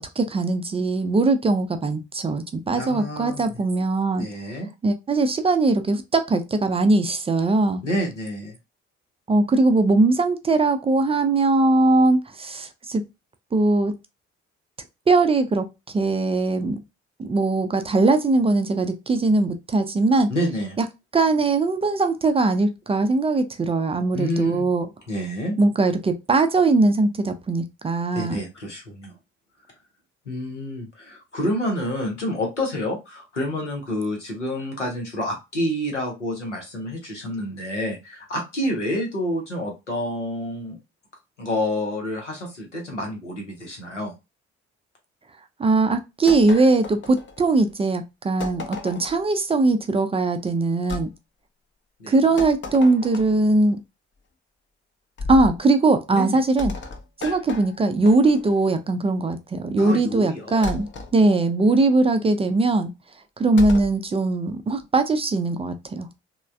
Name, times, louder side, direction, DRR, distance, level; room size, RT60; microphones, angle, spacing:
voice 1, 0.0-4.3 4.8-7.8 9.3-13.0 13.5-13.9 15.1-16.8 17.2-20.3 21.1-24.9 25.6-28.4 45.6-51.1 52.1-53.8 55.3-56.7 57.2-60.9 61.1-62.9 63.4-66.1, right 3 dB, 15° right, 0.4 m, -20 dB
voice 2, 2.8-3.4 4.2-4.7 7.8-8.6 20.3-20.8 24.1-24.6 25.1-25.6 28.1-29.1 30.3-40.8 41.4-44.1 52.0-52.2 56.1-56.4 59.8-60.7, left 1 dB, 90° left, 0.7 m, -28 dB
sound 1, 46.3-47.7 48.4-49.2 50.9-51.1 52.4-53.5 55.2-55.6 56.6-58.7 60.6-61.1 63.6-64.0, left 3 dB, 35° left, 0.6 m, -34 dB
3.1 x 2.1 x 2.4 m
figure-of-eight pair, 45°, 35 cm